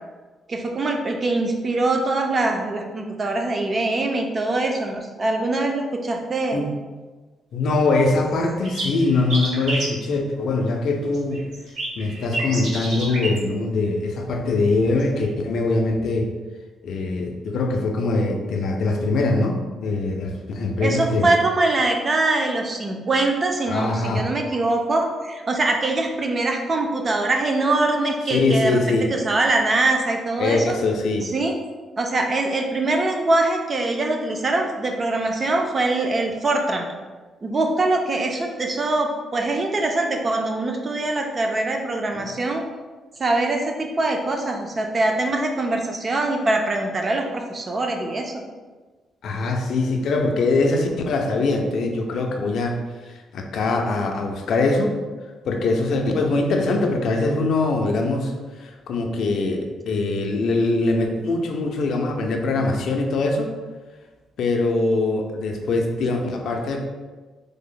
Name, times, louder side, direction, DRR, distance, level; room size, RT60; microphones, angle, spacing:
voice 1, 0.5-6.6 20.8-30.8 31.2-31.5 32.0-36.9 37.4-42.6 43.2-48.4, right 2 dB, 25° right, 3 dB, 0.3 m, -23 dB
voice 2, 7.5-11.4 12.0-16.3 16.8-21.3 23.7-24.3 28.3-29.1 30.4-31.3 42.1-42.2 49.2-52.8 53.3-55.0 55.4-58.3 58.6-63.5 64.4-66.8, left 2 dB, 60° left, 3 dB, 0.4 m, -22 dB
sound 1, 8.0-8.1 8.3-9.9 11.1-13.4 14.9-15.3, right 2 dB, 65° right, 1.0 m, -29 dB
3.3 x 2.1 x 3.6 m, 1.3 s
cardioid pair, 170°, 0 cm